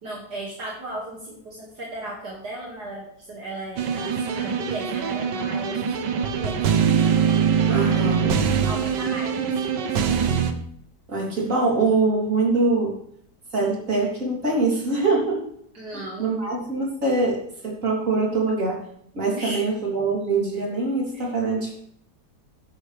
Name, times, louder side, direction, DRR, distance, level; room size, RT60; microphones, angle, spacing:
voice 1, 0.0-6.6 7.7-10.2 15.7-16.3 19.3-19.6 21.1-21.3, right 1 dB, 65° right, -3 dB, 2.9 m, -36 dB
sound 1, 3.8-10.5, right 7 dB, 80° right, 1.7 m, -23 dB
voice 2, 7.7-8.3 11.1-13.0 13.5-15.4 15.9-18.9 19.1-21.7, right 3 dB, 45° right, -3 dB, 4.0 m, -23 dB
13.5 x 10.5 x 3.5 m, 0.69 s
omnidirectional pair, 1.8 m